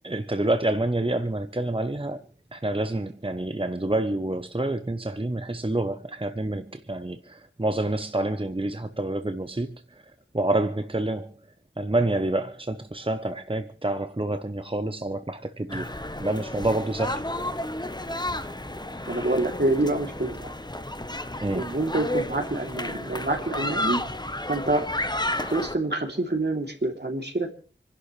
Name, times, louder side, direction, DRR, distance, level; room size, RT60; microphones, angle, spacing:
voice 1, 0.0-2.2 2.5-9.8 10.3-11.3 11.8-15.9 16.2-17.2 21.4-21.7, right 2 dB, 25° right, 0.9 m, -28 dB
sound 1, 15.7-25.8, left 1 dB, 20° left, 1.1 m, -32 dB
voice 2, 19.1-20.5 21.5-24.2 24.5-24.9 25.4-27.6, right 2 dB, 60° right, 3.1 m, -27 dB
28.0 x 11.5 x 3.3 m
wide cardioid pair, 40°, 20 cm